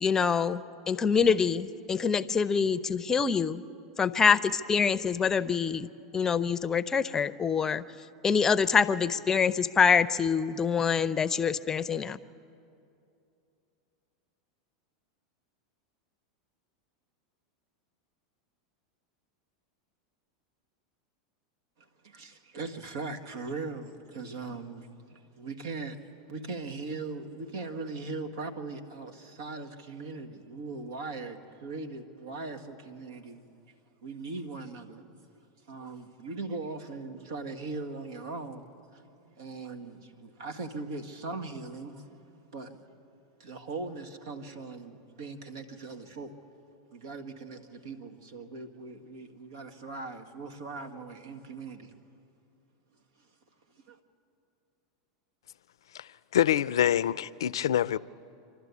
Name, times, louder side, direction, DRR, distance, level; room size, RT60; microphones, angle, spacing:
voice 1, 0.0-3.6 4.0-5.9 6.1-7.8 8.2-12.2, left 6 dB, 20° left, 0.6 m, -25 dB
voice 2, 21.8-26.0 26.3-33.4 34.0-35.1 35.7-38.7 38.9-42.0 42.5-42.8 43.4-46.3 46.9-51.9 53.9-54.0, right 3 dB, 75° right, 1.7 m, -40 dB
voice 3, 55.9-58.0, left 11 dB, 80° left, 0.4 m, -26 dB
26.5 x 12.5 x 8.4 m
hypercardioid pair, 100°, 2 cm